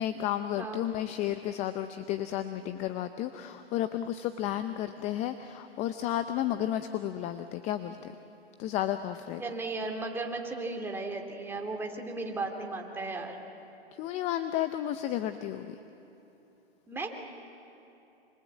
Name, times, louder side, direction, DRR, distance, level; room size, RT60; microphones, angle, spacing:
voice 1, 0.0-8.1 8.6-9.4 14.0-15.7, left 12 dB, 20° left, 10 dB, 0.7 m, -32 dB
voice 2, 9.4-13.3 16.9-17.1, right 3 dB, 5° right, 1 dB, 2.7 m, -35 dB
27.0 x 26.5 x 8.4 m, 2.9 s
hypercardioid pair, 135°, 32 cm